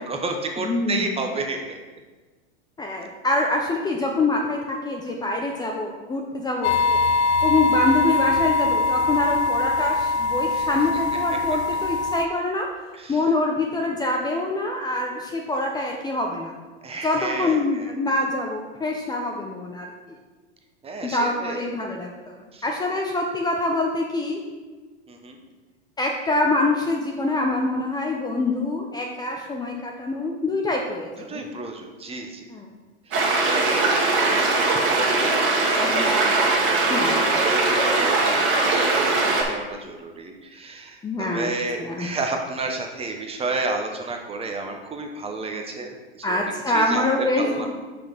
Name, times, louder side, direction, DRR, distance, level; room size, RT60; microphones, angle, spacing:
voice 1, 0.0-1.8 6.6-6.7 10.5-11.0 12.9-13.2 16.8-17.9 20.8-21.7 22.5-22.6 25.1-25.4 31.3-32.5 33.1-47.7, right 3 dB, 20° right, 3 dB, 0.9 m, -32 dB
voice 2, 0.6-1.2 2.8-7.0 7.4-12.7 13.1-16.5 17.0-20.2 21.0-24.4 26.0-31.4 32.5-32.7 35.8-36.4 36.9-37.3 41.0-41.5 41.8-42.1 46.2-47.7, left 2 dB, 15° left, 1 dB, 0.6 m, -25 dB
sound 1, 6.6-12.3, left 3 dB, 85° left, 0.6 m, -22 dB
sound 2, 33.1-39.4, right 3 dB, 35° right, 1.8 m, -21 dB
6.0 x 5.2 x 5.1 m, 1.3 s
supercardioid pair, 120°, 32 cm